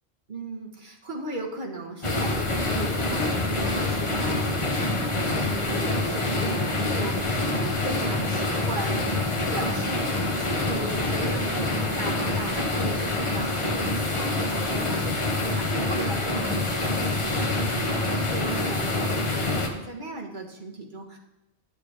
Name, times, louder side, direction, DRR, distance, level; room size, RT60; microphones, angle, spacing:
voice 1, 0.3-21.2, right 2 dB, 45° right, 0 dB, 1.5 m, -37 dB
sound 1, 2.0-19.7, left 2 dB, 30° left, 0.9 m, -26 dB
10.0 x 8.4 x 3.4 m, 0.95 s
omnidirectional pair, 1.2 m